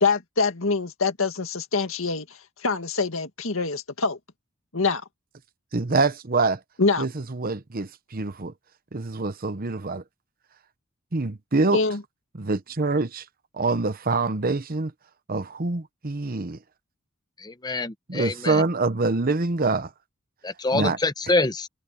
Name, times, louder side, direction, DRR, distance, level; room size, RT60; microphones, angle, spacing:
voice 1, 0.0-2.3 2.6-4.2 4.7-5.0 6.8-7.1 11.7-12.0, left 4 dB, 65° left, 2.1 m, -24 dB
voice 2, 5.7-6.6 7.0-8.5 8.9-10.0 11.1-11.8 12.4-13.2 13.6-14.9 15.3-16.6 18.1-19.9 20.7-21.0, right 3 dB, 45° right, 1.0 m, -25 dB
voice 3, 17.4-18.6 20.4-21.7, left 2 dB, 20° left, 0.8 m, -26 dB
head